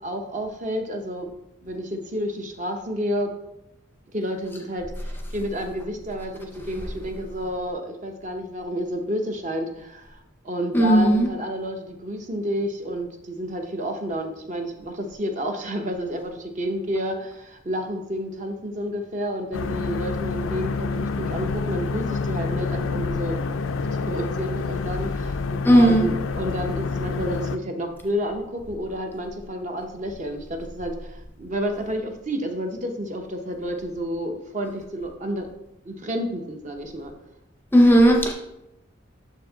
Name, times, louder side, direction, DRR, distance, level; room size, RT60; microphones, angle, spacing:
voice 1, 0.0-1.3 1.6-3.3 4.1-23.4 23.9-25.4 25.7-35.5 35.8-37.1, equal, 40° right, 4 dB, 0.7 m, -30 dB
voice 2, 10.7-11.3 25.6-26.1 37.7-38.3, equal, 10° left, 2 dB, 0.5 m, -15 dB
sound 1, 19.5-27.6, left 4 dB, 80° left, 0.4 m, -28 dB
6.6 x 4.6 x 3.9 m, 0.88 s
head